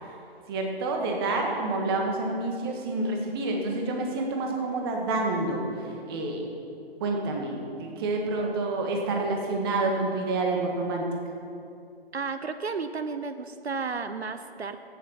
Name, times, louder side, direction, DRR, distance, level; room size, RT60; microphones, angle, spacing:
voice 1, 0.5-6.4 7.0-11.0, right 2 dB, 25° right, 1 dB, 1.4 m, -28 dB
voice 2, 12.1-14.8, right 4 dB, 85° right, 10 dB, 0.7 m, -33 dB
15.5 x 6.7 x 5.7 m, 2.5 s
figure-of-eight pair, 145°, 31 cm